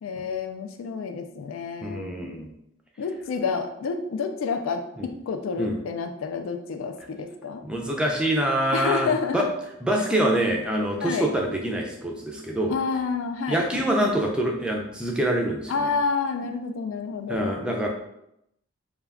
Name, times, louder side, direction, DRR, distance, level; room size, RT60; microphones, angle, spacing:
voice 1, 0.0-2.4 3.0-4.8 5.3-7.6 8.7-9.5 11.0-11.3 12.7-13.6 15.7-17.6, left 5 dB, 85° left, 6 dB, 0.3 m, -29 dB
voice 2, 1.8-2.5 5.0-5.1 5.6-5.8 7.6-9.4 9.8-12.7 13.5-15.9 17.3-17.9, right 1 dB, 5° right, 0 dB, 0.4 m, -25 dB
2.3 x 2.2 x 3.4 m, 0.80 s
head